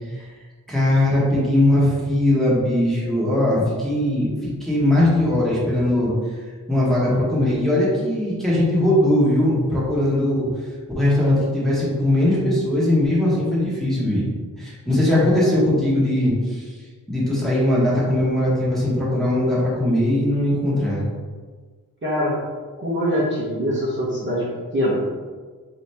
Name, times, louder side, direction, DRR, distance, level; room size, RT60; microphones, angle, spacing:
voice 1, 0.7-6.1 6.7-10.5 11.0-14.3 14.6-16.7 17.1-21.0, left 1 dB, ahead, -8 dB, 1.1 m, -20 dB
voice 2, 22.0-22.3 22.8-24.4 24.7-24.9, equal, 30° right, -6 dB, 0.9 m, -23 dB
4.1 x 2.8 x 3.3 m, 1.5 s
wide cardioid pair, 150°, 36 cm